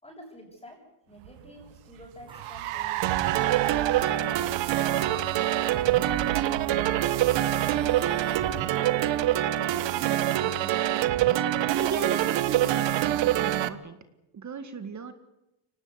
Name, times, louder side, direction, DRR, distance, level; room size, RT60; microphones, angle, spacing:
voice 1, 0.0-3.5 4.0-7.0 7.7-8.2, equal, 10° left, -2 dB, 7.2 m, -50 dB
Car, 1.2-9.0, right 15 dB, 80° right, 1.4 m, -35 dB
sound 1, 2.3-10.8, right 2 dB, 10° right, 2.9 m, -46 dB
sound 2, 3.0-13.7, right 13 dB, 60° right, 1.4 m, -25 dB
voice 2, 10.0-11.1 11.7-14.0 14.3-15.1, right 5 dB, 35° right, 9 dB, 2.0 m, -37 dB
24.5 x 19.0 x 8.3 m, 0.92 s
cardioid pair, 110°, 50 cm